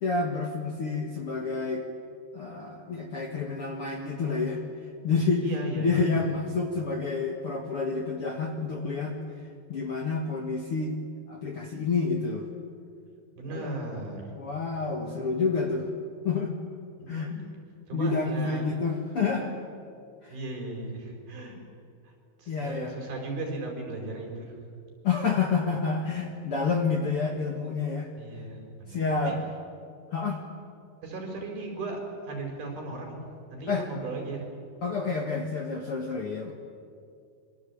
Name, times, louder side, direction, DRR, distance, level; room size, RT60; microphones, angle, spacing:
voice 1, 0.0-1.8 2.3-4.6 5.0-5.4 5.7-9.2 9.7-11.0 11.3-12.5 13.5-13.7 14.4-15.9 16.2-16.5 17.1-17.3 17.9-19.5 20.2-20.4 22.5-22.9 25.0-28.1 28.9-29.4 30.1-30.4 33.7-33.8 34.8-36.5, left 4 dB, 45° left, 2 dB, 2.0 m, -29 dB
voice 2, 5.4-6.1 13.4-14.3 15.0-15.3 17.0-17.5 17.9-18.7 20.3-21.6 22.0-22.1 22.4-24.6 28.2-29.3 31.0-33.2 33.5-34.5, right 2 dB, 70° right, 1 dB, 6.9 m, -37 dB
26.5 x 23.0 x 8.6 m, 2.4 s
omnidirectional pair, 4.5 m